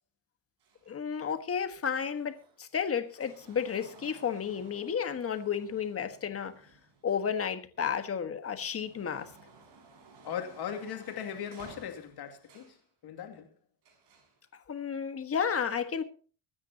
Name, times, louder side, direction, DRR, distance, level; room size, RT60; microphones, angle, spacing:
sound 1, 0.6-7.8 8.3-12.8 13.8-14.4 15.3-15.4, right 3 dB, 60° right, 6.5 m, -57 dB
voice 1, 0.9-6.5 7.0-9.3 14.5-16.0, left 7 dB, 30° left, 1.5 m, -32 dB
voice 2, 10.2-12.8 13.0-13.5, left 8 dB, 55° left, 2.5 m, -38 dB
24.0 x 9.7 x 2.9 m
cardioid pair, 155°, 45 cm